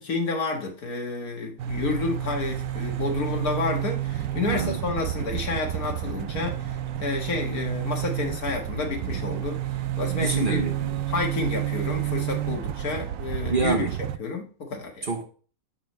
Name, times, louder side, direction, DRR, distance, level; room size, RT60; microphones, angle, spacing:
voice 1, 0.0-9.6 10.0-10.7 11.1-13.9 14.2-15.1, left 3 dB, 85° left, 2.1 m, -30 dB
sound 1, 1.6-14.2, right 12 dB, 90° right, 1.1 m, -30 dB
voice 2, 4.4-4.8 10.1-11.0 13.5-13.9 15.0-15.2, right 4 dB, 40° right, 1.0 m, -27 dB
6.7 x 6.0 x 3.2 m
omnidirectional pair, 1.5 m